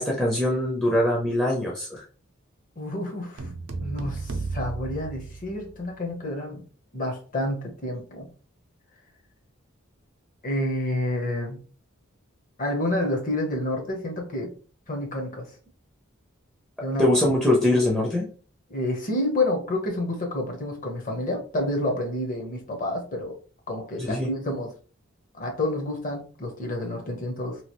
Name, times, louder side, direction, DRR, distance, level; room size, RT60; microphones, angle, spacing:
voice 1, 0.0-2.0 17.0-18.3 24.0-24.3, left 1 dB, 5° left, -3 dB, 0.6 m, -22 dB
voice 2, 2.8-3.5 3.8-6.6 6.9-8.3 10.4-11.6 12.6-14.5 14.9-15.5 16.8-17.1 18.7-23.4 23.7-24.7 25.4-27.6, left 1 dB, 40° left, 2 dB, 0.9 m, -29 dB
sound 1, 3.4-5.9, right 3 dB, 70° right, 0.6 m, -34 dB
3.0 x 2.4 x 2.9 m, 0.38 s
head